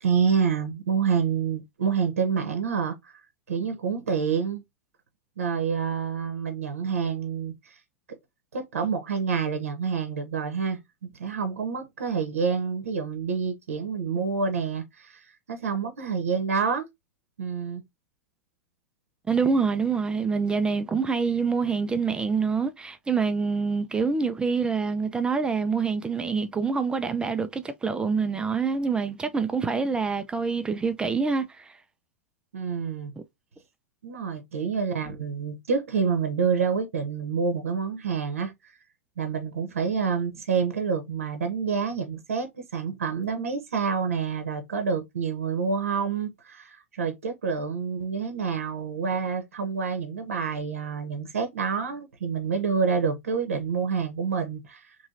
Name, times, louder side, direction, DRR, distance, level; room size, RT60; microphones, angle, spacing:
voice 1, 0.0-3.2 3.5-4.6 5.4-7.8 8.5-15.2 15.5-16.9 17.4-17.8 32.5-33.1 34.0-38.8 39.2-54.9, right 6 dB, 70° right, 0.8 m, -28 dB
voice 2, 19.3-31.8, right 5 dB, 10° right, 0.3 m, -26 dB
3.0 x 2.7 x 2.5 m
figure-of-eight pair, 95°, 8 cm